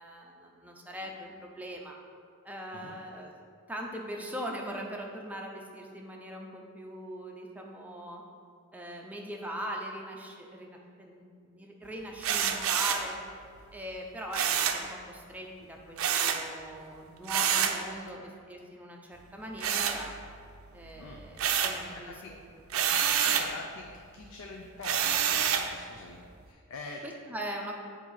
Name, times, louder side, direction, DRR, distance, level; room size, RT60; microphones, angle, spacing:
voice 1, 0.0-2.0 2.4-3.3 3.7-8.2 8.7-13.2 13.7-20.1 20.7-22.1 22.6-23.2 27.0-27.7, right 1 dB, 5° right, 0 dB, 0.6 m, -41 dB
sound 1, 12.2-13.1 14.3-14.9 16.0-16.5 17.3-17.8 19.6-20.5 20.8-21.8 22.7-23.5 24.8-25.7, right 8 dB, 80° right, 0.4 m, -27 dB
voice 2, 21.9-22.4 22.9-26.2 26.5-27.0, left 3 dB, 80° left, 1 dB, 0.5 m, -45 dB
7.2 x 2.7 x 5.8 m, 2.2 s
head